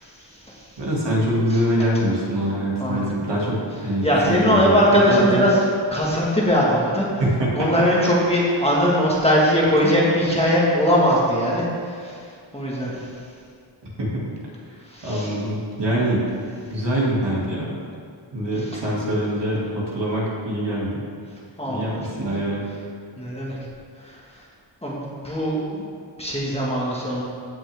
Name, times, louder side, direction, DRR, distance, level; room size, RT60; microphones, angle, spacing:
voice 1, 0.0-0.8 1.5-1.6 2.8-3.1 4.0-5.6 5.9-7.1 7.6-12.2 12.5-13.1 14.8-15.3 18.6-18.8 21.6-22.0 23.2-23.6 24.0-24.2 24.8-25.8 26.2-27.2, equal, 10° left, -5 dB, 1.7 m, -21 dB
voice 2, 0.8-4.8 5.1-5.5 7.2-7.7 9.8-9.9 14.0-14.3 15.0-16.2 16.7-17.7 18.3-21.0 21.7-22.6, right 1 dB, 60° right, -5 dB, 2.5 m, -24 dB
15.5 x 5.9 x 3.6 m, 2.2 s
wide cardioid pair, 130°, 48 cm